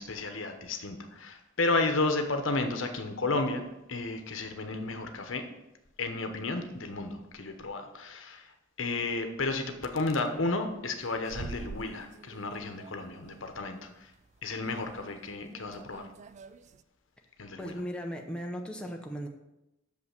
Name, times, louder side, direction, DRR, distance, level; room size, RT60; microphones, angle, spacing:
voice 1, 0.0-3.6 3.9-5.4 6.0-8.5 8.8-14.1 14.4-16.1 17.4-17.7, left 3 dB, 70° left, 6 dB, 1.0 m, -32 dB
sound 1, 10.9-16.8, right 4 dB, 35° right, 0.3 m, -47 dB
voice 2, 17.6-19.3, equal, 5° left, 1 dB, 0.7 m, -37 dB
6.7 x 5.7 x 6.6 m, 0.93 s
head